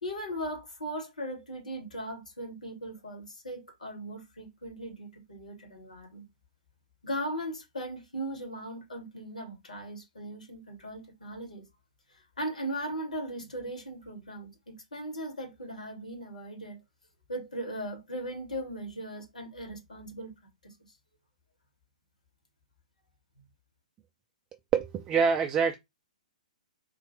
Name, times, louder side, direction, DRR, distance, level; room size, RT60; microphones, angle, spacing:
voice 1, 0.0-6.3 7.0-11.6 12.1-16.8 17.3-20.3 20.6-20.7, right 1 dB, 70° left, 2.2 m, -38 dB
voice 2, 24.7-25.8, right 6 dB, 20° right, 0.4 m, -25 dB
3.9 x 2.8 x 4.7 m
figure-of-eight pair, 115°, 4 cm